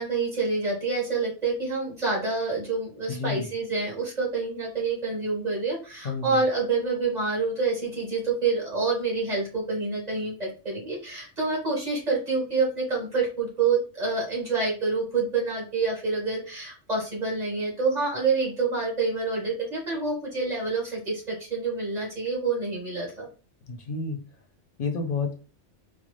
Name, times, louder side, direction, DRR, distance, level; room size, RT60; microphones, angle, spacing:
voice 1, 0.0-23.3, right 4 dB, 35° right, -4 dB, 1.8 m, -27 dB
voice 2, 3.1-3.5 6.0-6.4 23.7-24.2 24.8-25.3, left 4 dB, 55° left, 4 dB, 0.8 m, -30 dB
3.9 x 2.1 x 3.2 m, 0.35 s
omnidirectional pair, 1.2 m